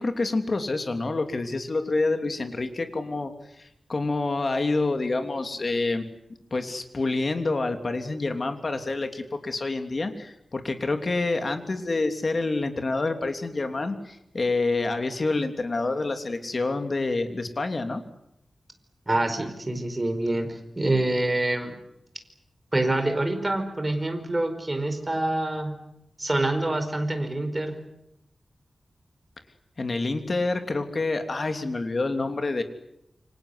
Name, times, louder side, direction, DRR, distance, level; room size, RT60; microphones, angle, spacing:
voice 1, 0.0-6.1 6.5-18.0 29.8-32.6, left 3 dB, 45° left, 6 dB, 3.1 m, -27 dB
voice 2, 19.1-21.8 22.7-25.8 26.2-27.8, right 2 dB, 20° right, 7 dB, 4.8 m, -26 dB
28.0 x 25.0 x 8.2 m, 0.83 s
wide cardioid pair, 120°, 0 cm